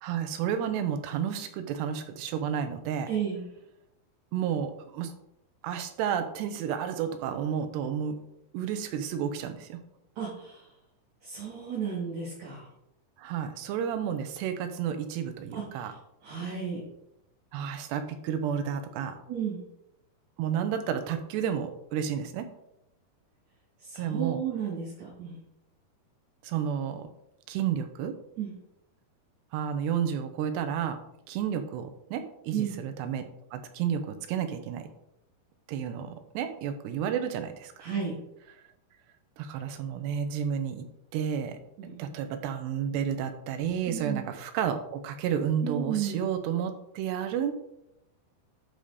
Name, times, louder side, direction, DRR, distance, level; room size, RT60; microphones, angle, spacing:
voice 1, 0.0-3.1 4.3-5.1 5.6-8.2 8.5-9.8 13.2-15.9 17.5-19.2 20.4-22.5 24.0-24.4 26.4-27.1 27.5-28.1 29.5-31.0 31.3-34.9 35.7-37.9 39.4-40.9 41.1-47.5, right 8 dB, 90° right, 8 dB, 3.0 m, -31 dB
voice 2, 3.1-3.4 10.2-10.6 11.2-12.7 15.5-15.9 16.2-16.8 19.3-19.6 23.8-25.4 28.4-28.5 32.5-32.7 37.8-38.1 41.8-42.1 43.9-44.2 45.6-46.2, right 8 dB, 50° right, -7 dB, 3.2 m, -33 dB
11.0 x 5.1 x 4.1 m, 0.81 s
omnidirectional pair, 4.7 m